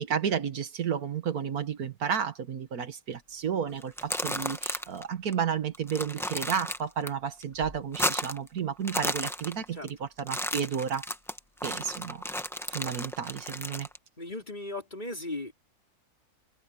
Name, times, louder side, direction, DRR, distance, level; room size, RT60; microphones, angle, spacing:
voice 1, 0.0-11.1 11.6-12.2 12.7-13.9, right 7 dB, 75° right, 1.8 m, -32 dB
sound 1, 3.8-5.0 5.3-5.4 5.7-7.1 7.4-8.5 8.8-9.9 10.2-14.0, equal, ahead, 1.1 m, -33 dB
voice 2, 14.2-15.5, left 2 dB, 30° left, 4.9 m, -37 dB
omnidirectional pair, 1.6 m